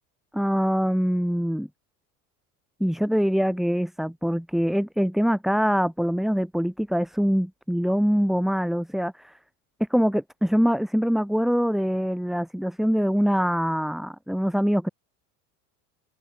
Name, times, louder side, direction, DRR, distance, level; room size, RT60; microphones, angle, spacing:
voice 1, 0.3-1.7 2.8-9.3 9.9-14.9, equal, ahead, 1.0 m, -24 dB
open air
hypercardioid pair, 90°, 42 cm